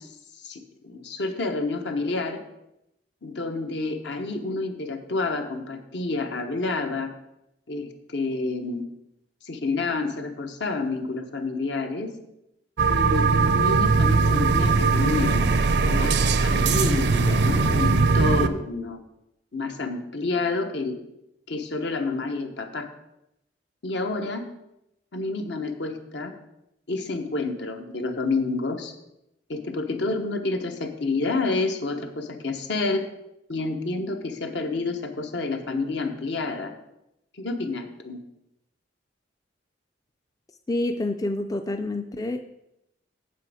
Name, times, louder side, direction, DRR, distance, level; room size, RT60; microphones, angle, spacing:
voice 1, 0.0-2.4 3.2-7.1 7.7-8.9 9.4-12.2 12.9-15.5 15.9-16.1 16.4-19.0 19.5-21.0 21.5-22.9 23.8-24.4 25.1-26.3 26.9-28.9 29.5-33.0 33.5-36.7 37.3-38.2, left 3 dB, 70° left, 5 dB, 1.1 m, -29 dB
sound 1, 12.8-18.5, right 4 dB, 65° right, 0.5 m, -20 dB
voice 2, 40.7-42.4, left 2 dB, 20° left, 6 dB, 0.4 m, -28 dB
7.6 x 7.6 x 5.0 m, 0.85 s
head